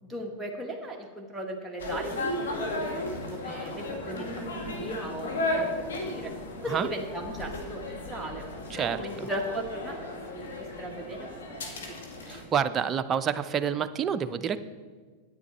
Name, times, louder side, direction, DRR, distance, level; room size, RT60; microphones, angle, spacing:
voice 1, 0.0-2.9 3.3-4.3 4.8-6.3 6.6-8.4 8.8-10.0 10.3-12.1, right 1 dB, 10° right, -1 dB, 1.3 m, -37 dB
sound 1, 1.8-12.4, left 1 dB, 85° left, 1.8 m, -35 dB
voice 2, 8.7-9.3 12.3-14.6, right 7 dB, 30° right, 10 dB, 0.5 m, -28 dB
9.8 x 9.0 x 4.2 m, 1.5 s
hypercardioid pair, 105°, 0 cm